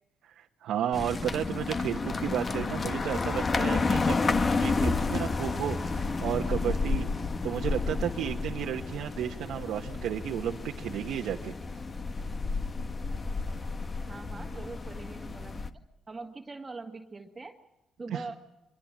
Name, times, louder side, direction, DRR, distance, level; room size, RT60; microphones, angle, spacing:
voice 1, 0.2-7.1 7.4-11.5 18.1-18.2, right 10 dB, 80° right, 2 dB, 1.3 m, -33 dB
sound 1, 0.9-15.7, left 4 dB, 35° left, 1.4 m, -31 dB
voice 2, 14.1-15.6 16.1-17.5 18.0-18.3, right 3 dB, 25° right, 3 dB, 1.8 m, -42 dB
25.0 x 22.0 x 7.4 m, 0.95 s
cardioid pair, 90°, 0 cm